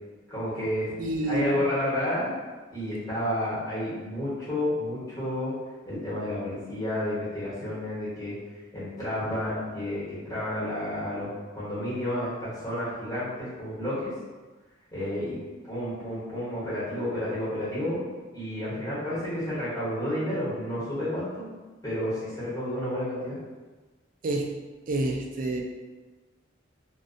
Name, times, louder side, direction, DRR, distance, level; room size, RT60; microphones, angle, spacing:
voice 1, 0.3-1.0 1.2-2.3 2.7-5.5 5.9-8.3 8.7-11.3 11.5-14.1 14.9-15.4 15.6-18.0 18.3-21.5 21.8-23.4, left 1 dB, 20° left, -11 dB, 1.1 m, -30 dB
voice 2, 1.0-1.6 24.2-24.5 24.9-25.6, right 1 dB, 45° right, 1 dB, 0.3 m, -28 dB
2.5 x 2.1 x 2.5 m, 1.3 s
head